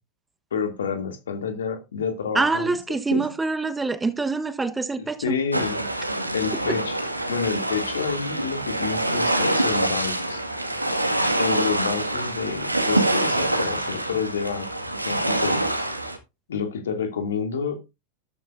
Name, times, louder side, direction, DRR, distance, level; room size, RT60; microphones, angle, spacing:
voice 1, 0.5-2.7 3.1-3.2 5.2-5.8 6.3-7.0 7.3-10.4 11.4-14.7 15.0-15.6 16.5-17.8, left 6 dB, 65° left, 2.6 m, -28 dB
voice 2, 2.3-5.3, right 3 dB, 10° right, 1.1 m, -25 dB
sound 1, 5.5-16.2, right 1 dB, 85° right, 1.8 m, -25 dB
13.0 x 12.0 x 2.6 m
figure-of-eight pair, 90°, 0 cm